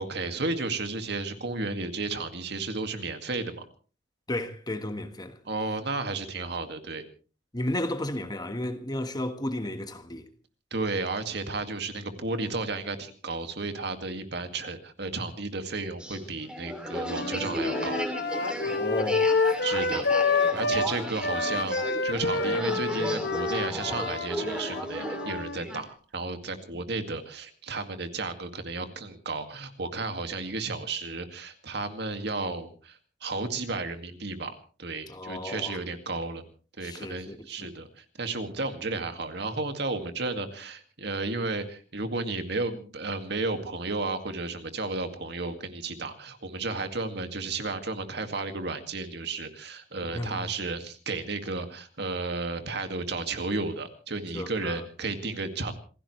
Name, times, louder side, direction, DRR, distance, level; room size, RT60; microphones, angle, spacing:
voice 1, 0.0-3.6 5.5-7.0 10.7-18.0 19.6-20.1 20.5-36.4 36.8-55.7, right 3 dB, 65° right, 2.2 m, -33 dB
voice 2, 4.3-5.4 7.5-10.3 18.6-19.6 19.9-20.0 20.5-20.9 35.1-35.8 36.8-37.7 50.0-50.4 54.3-54.8, left 1 dB, 20° left, 1.5 m, -33 dB
sound 1, 16.0-25.9, equal, 5° right, 3.0 m, -35 dB
sound 2, 17.1-20.9 21.2-25.6, left 3 dB, 65° left, 1.4 m, -28 dB
27.5 x 16.0 x 3.2 m
head